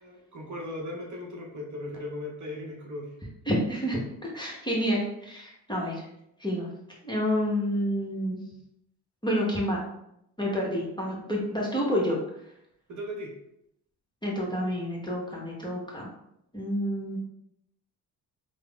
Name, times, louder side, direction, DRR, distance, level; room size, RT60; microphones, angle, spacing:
voice 1, 0.0-3.1 12.9-13.3, left 1 dB, 40° right, -1 dB, 0.8 m, -37 dB
voice 2, 3.5-6.0 6.4-6.7 7.0-8.4 9.2-9.8 10.4-12.2 14.2-16.1 16.5-17.2, equal, 10° left, -4 dB, 0.8 m, -29 dB
3.3 x 2.0 x 2.3 m, 0.78 s
hypercardioid pair, 60°, 46 cm